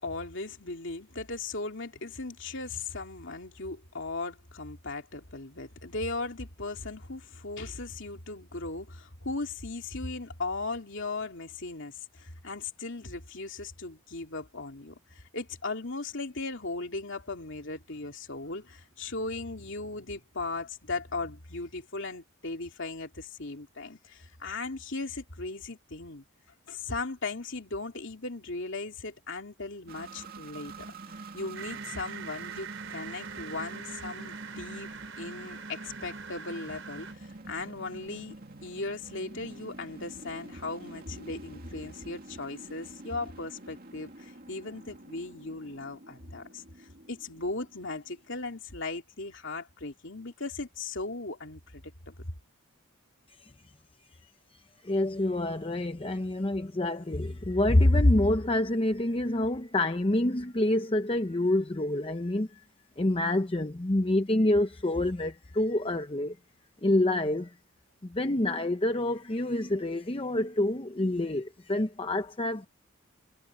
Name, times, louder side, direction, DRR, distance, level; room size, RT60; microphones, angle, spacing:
voice 1, 0.0-26.2 26.7-30.9 31.3-34.9 35.2-38.3 38.6-52.2, left 3 dB, 55° left, 3.0 m, -37 dB
sound 1, 29.9-48.4, right 2 dB, 40° right, 2.5 m, -47 dB
sound 2, 31.5-37.1, right 7 dB, 60° right, 6.1 m, -43 dB
voice 2, 54.8-62.6 63.0-66.4 66.8-67.5 68.0-72.7, left 1 dB, 25° left, 0.7 m, -27 dB
head